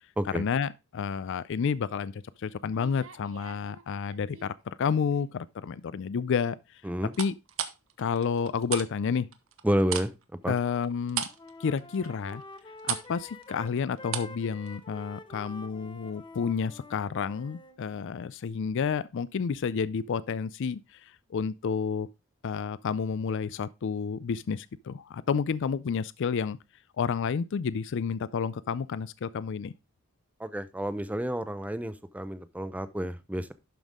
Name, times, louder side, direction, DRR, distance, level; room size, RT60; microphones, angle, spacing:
voice 1, 0.3-6.8 7.2-7.3 8.0-9.3 10.5-11.2 11.6-12.4 12.8-22.1 22.4-26.6 27.0-29.7, left 6 dB, 65° left, 0.4 m, -30 dB
sound 1, 2.7-4.5 4.9-5.4 7.1-8.9 9.2-14.4 14.7-14.8, right 9 dB, 70° right, 1.1 m, -36 dB
voice 2, 9.6-10.1 10.4-10.6 30.4-33.5, equal, 5° right, 0.6 m, -30 dB
Wind instrument woodwind instrument, 10.9-11.0 11.2-17.8, left 2 dB, 25° left, 1.0 m, -48 dB
11.5 x 5.3 x 3.6 m
head